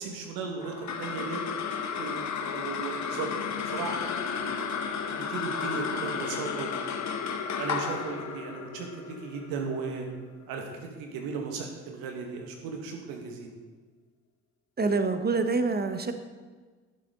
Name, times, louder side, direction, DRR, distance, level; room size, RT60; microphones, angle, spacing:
voice 1, 0.0-1.4 2.0-3.3 3.7-4.6 5.0-7.0 7.5-10.1 10.5-13.5, right 5 dB, 70° right, 2 dB, 2.1 m, -36 dB
sound 1, 0.6-11.2, left 6 dB, 50° left, 1.2 m, -33 dB
voice 2, 14.8-16.1, right 3 dB, 25° right, 8 dB, 1.3 m, -26 dB
12.0 x 11.5 x 4.0 m, 1.4 s
hypercardioid pair, 45°, 36 cm